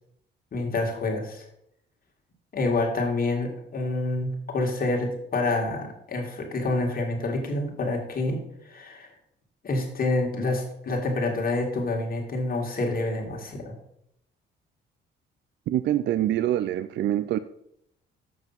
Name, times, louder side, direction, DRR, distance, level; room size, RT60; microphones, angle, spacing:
voice 1, 0.5-1.5 2.5-9.1 9.6-13.7, left 2 dB, 50° left, 1 dB, 2.2 m, -27 dB
voice 2, 15.7-17.4, right 12 dB, 60° right, 13 dB, 0.4 m, -25 dB
7.2 x 5.8 x 5.7 m, 0.75 s
cardioid pair, 90°, 20 cm